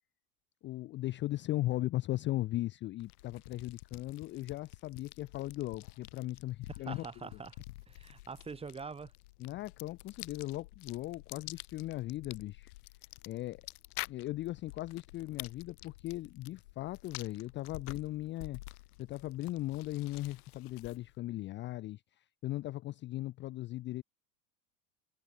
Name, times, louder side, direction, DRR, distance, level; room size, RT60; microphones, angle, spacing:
voice 1, 0.6-7.0 9.4-12.7 13.3-13.6 14.1-18.6 19.0-24.0, left 16 dB, 25° left, 0.5 m, -38 dB
sound 1, 3.0-21.2, left 19 dB, 80° left, 1.6 m, -49 dB
voice 2, 6.8-9.1, right 5 dB, 15° right, 1.6 m, -44 dB
supercardioid pair, 135°, 45 cm